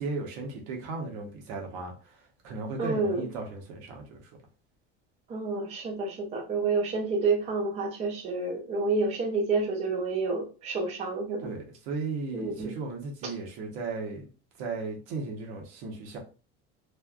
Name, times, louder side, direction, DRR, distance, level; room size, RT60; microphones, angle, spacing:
voice 1, 0.0-4.3 11.4-14.3 14.6-16.2, right 3 dB, 85° right, 1.1 m, -36 dB
voice 2, 2.8-3.3 5.3-11.5 12.3-12.8, right 3 dB, 20° right, 0.4 m, -29 dB
3.2 x 2.4 x 2.4 m
cardioid pair, 175°, 32 cm